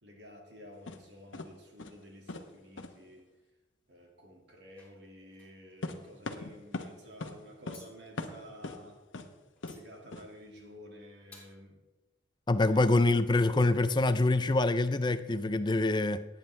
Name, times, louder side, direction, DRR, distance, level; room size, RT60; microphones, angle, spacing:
voice 1, 0.0-3.3 3.9-9.0 9.7-11.8 12.7-12.8, equal, 65° right, 2.2 m, -52 dB
sound 1, 0.9-1.0 1.3-1.5 1.8-2.0 2.3-2.5 2.8-2.9 5.8-6.9 7.2-7.4 7.7-7.8 8.2-8.8 9.1-9.3 9.6-9.8 10.1-10.2, left 2 dB, 90° left, 1.0 m, -39 dB
sound 2, 4.7-6.2 7.7-7.9 9.6-9.8 10.7-10.9 11.3-11.6, left 2 dB, 5° left, 3.1 m, -57 dB
voice 2, 12.5-16.3, left 2 dB, 25° left, 0.4 m, -25 dB
18.0 x 8.9 x 3.4 m
head